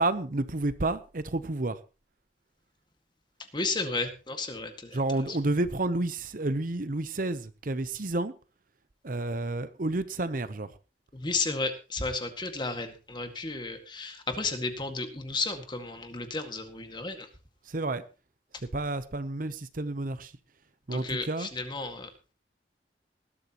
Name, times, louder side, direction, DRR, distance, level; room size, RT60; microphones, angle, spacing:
voice 1, 0.0-1.8 4.9-8.3 9.0-10.7 17.7-18.0 18.7-20.3 20.9-21.5, right 2 dB, 50° right, 0.8 m, -30 dB
voice 2, 3.5-5.0 11.1-17.3 20.9-22.1, left 3 dB, 25° left, 2.0 m, -33 dB
19.5 x 12.5 x 3.0 m
head